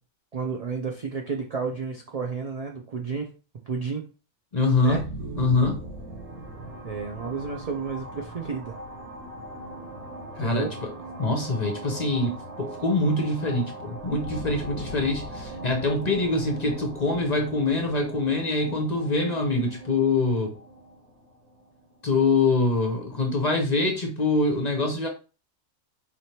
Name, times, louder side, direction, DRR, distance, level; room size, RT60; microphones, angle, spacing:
voice 1, 0.3-3.3 3.7-4.1 4.8-5.0 6.8-8.7 10.4-10.7, right 5 dB, 60° right, 0.4 m, -31 dB
voice 2, 4.5-5.0 5.4-5.8 10.4-10.9 11.2-20.5 22.0-25.1, left 3 dB, 40° left, 0.7 m, -24 dB
sound 1, 4.7-22.3, right 1 dB, 75° right, 1.4 m, -39 dB
4.3 x 3.2 x 2.8 m
omnidirectional pair, 1.4 m